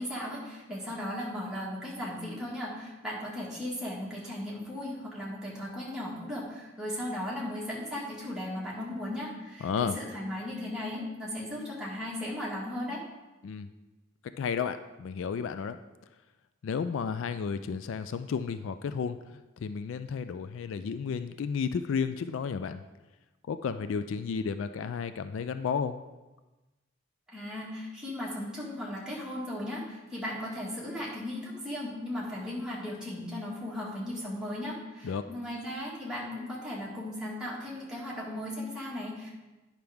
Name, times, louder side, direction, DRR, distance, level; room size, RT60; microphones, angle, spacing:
voice 1, 0.0-13.0 27.3-39.3, left 1 dB, 5° right, -6 dB, 1.7 m, -36 dB
voice 2, 9.6-10.0 13.4-13.7 14.4-15.8 16.6-22.8 23.5-26.0 35.0-35.2, left 6 dB, 65° left, 11 dB, 0.3 m, -32 dB
9.4 x 5.8 x 3.5 m, 1.1 s
head